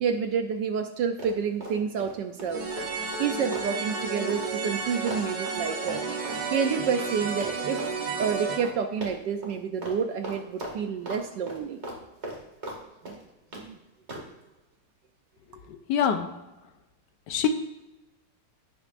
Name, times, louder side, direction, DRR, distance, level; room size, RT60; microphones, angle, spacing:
voice 1, 0.0-2.6 3.2-6.0 6.5-7.8 8.2-11.8 13.0-13.1 13.5-13.8, right 6 dB, 70° right, 7 dB, 1.1 m, -29 dB
Run, 1.2-2.1 2.4-7.2 7.4-7.9 8.2-8.3 8.6-8.7 9.0-9.5 9.8-10.0 10.2-11.2 11.5-12.8 13.0-13.6 14.1-14.3, right 1 dB, 30° right, 2.1 m, -38 dB
sound 1, 2.5-8.6, right 4 dB, 50° right, 1.6 m, -32 dB
voice 2, 15.7-16.3 17.3-17.5, left 8 dB, 70° left, 8 dB, 1.1 m, -25 dB
16.5 x 6.5 x 2.5 m, 1.0 s
omnidirectional pair, 2.4 m